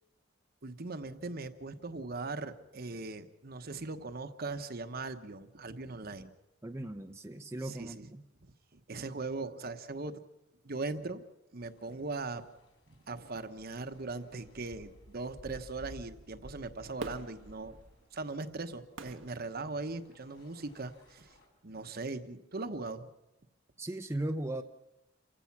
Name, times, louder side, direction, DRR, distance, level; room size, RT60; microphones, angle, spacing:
voice 1, 0.6-6.3 7.6-8.1 8.4-10.2 10.6-11.2 11.5-12.4 13.1-17.8 18.1-21.3 21.6-23.1, right 3 dB, 50° right, 8 dB, 1.1 m, -40 dB
voice 2, 6.6-8.2 23.8-24.6, right 1 dB, 15° right, 5 dB, 0.6 m, -37 dB
sound 1, 11.6-21.5, equal, 65° left, 5.2 m, -56 dB
Fireworks, 17.0-20.3 20.9-21.0, right 3 dB, 90° right, 1.2 m, -47 dB
28.0 x 16.0 x 6.0 m, 0.97 s
head